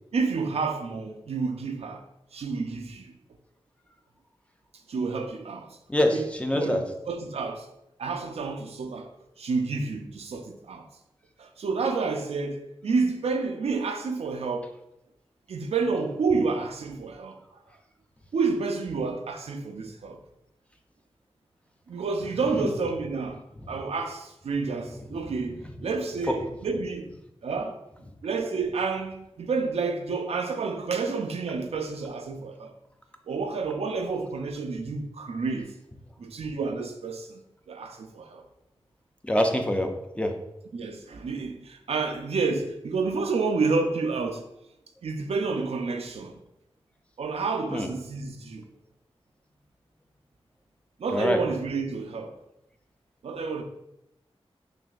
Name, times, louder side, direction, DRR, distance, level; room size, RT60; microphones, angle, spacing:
voice 1, 0.1-2.0 2.3-3.2 4.9-5.7 6.1-6.2 6.5-7.7 8.0-9.1 9.4-10.9 11.4-14.7 15.5-17.4 18.3-20.2 21.9-23.4 23.7-27.1 27.4-27.8 28.2-32.7 33.3-35.7 36.2-37.4 37.7-38.5 40.7-44.5 45.0-46.3 47.2-48.7 51.0-52.3 53.2-53.6, right 4 dB, 90° right, 0.4 m, -29 dB
voice 2, 5.9-6.8 22.5-22.7 26.3-26.4 39.2-40.4 47.7-47.9 51.1-51.4, left 1 dB, 10° left, 0.4 m, -25 dB
6.0 x 2.5 x 2.4 m
wide cardioid pair, 80°, 10 cm